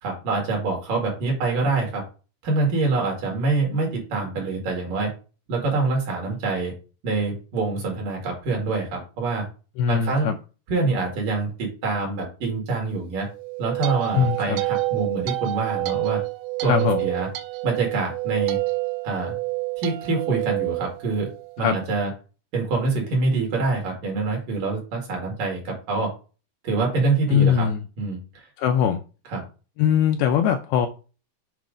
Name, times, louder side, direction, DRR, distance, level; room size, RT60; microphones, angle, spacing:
voice 1, 0.0-2.0 2.4-5.1 5.5-6.7 7.0-9.5 9.9-10.3 10.7-13.3 13.6-16.2 16.6-17.3 17.6-18.6 19.0-19.4 19.8-21.3 21.6-22.1 22.5-26.1 26.6-27.7 28.0-28.5 29.3-29.4, right 3 dB, 60° right, 3.2 m, -25 dB
voice 2, 9.8-10.4 14.1-14.6 16.6-17.1 21.6-21.8 27.3-27.8 28.6-29.0 29.8-30.9, left 8 dB, 80° left, 2.3 m, -21 dB
sound 1, 13.3-21.7, right 23 dB, 85° right, 2.6 m, -28 dB
7.6 x 3.1 x 5.0 m
omnidirectional pair, 4.8 m